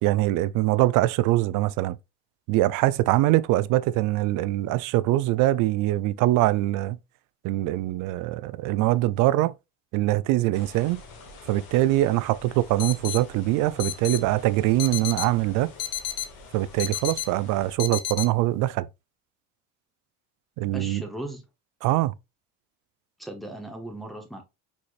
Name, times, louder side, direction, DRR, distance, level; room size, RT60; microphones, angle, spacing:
voice 1, 0.0-2.0 2.5-7.0 7.4-9.5 9.9-11.0 11.5-15.7 16.5-18.9 20.6-21.0 21.8-22.1, right 16 dB, 65° right, 0.4 m, -23 dB
sound 1, 10.5-17.8, left 3 dB, 85° left, 1.4 m, -47 dB
sound 2, 12.8-13.2 13.8-14.2 14.8-15.3 15.8-16.3 16.8-17.3 17.8-18.3, left 12 dB, 50° left, 0.6 m, -30 dB
voice 2, 20.7-21.4 23.2-24.4, right 1 dB, ahead, 0.9 m, -37 dB
4.8 x 4.2 x 2.4 m
cardioid pair, 170°, 34 cm